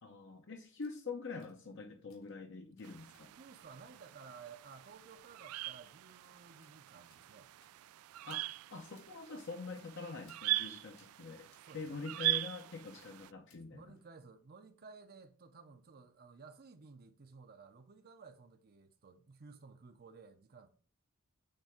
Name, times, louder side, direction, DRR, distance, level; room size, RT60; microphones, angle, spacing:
voice 1, 0.0-3.3 8.3-13.9, left 4 dB, 60° left, 0.8 m, -45 dB
sound 1, 0.8-1.0 1.4-1.6 2.1-2.3 2.8-3.3 3.6-3.7 4.3-4.5 4.7-4.8 5.1-5.2 5.5-5.6 5.9-6.0 6.2-6.4 6.6-6.7 7.1-7.2 7.6-8.0 8.3-8.4 9.0-9.1 9.4-9.5 9.8-9.9 10.3-10.4 11.0-11.1 11.5-12.0 12.2-12.7 13.0-13.1 13.5-13.6 14.0-14.1, left 5 dB, 85° left, 2.9 m, -69 dB
sound 2, 2.8-13.3, right 16 dB, 85° right, 0.3 m, -41 dB
voice 2, 3.4-7.5 11.6-12.0 13.7-20.7, right 5 dB, 45° right, 0.6 m, -55 dB
8.9 x 3.4 x 5.0 m
head